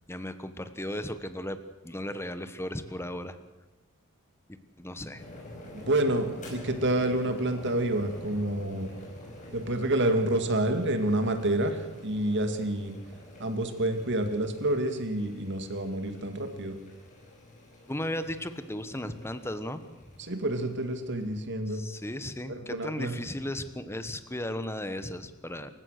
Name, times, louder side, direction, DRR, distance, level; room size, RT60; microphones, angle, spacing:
voice 1, 0.1-1.6 1.8-3.4 4.5-5.2 17.9-20.2 21.7-25.7, left 1 dB, 10° left, 11 dB, 1.2 m, -36 dB
sound 1, 5.1-21.4, left 1 dB, 35° left, 6.0 m, -47 dB
voice 2, 5.7-8.9 9.5-12.9 13.4-16.8 20.2-21.8 22.5-23.1, right 1 dB, 55° right, 7 dB, 2.3 m, -28 dB
27.0 x 15.5 x 6.7 m, 1.1 s
head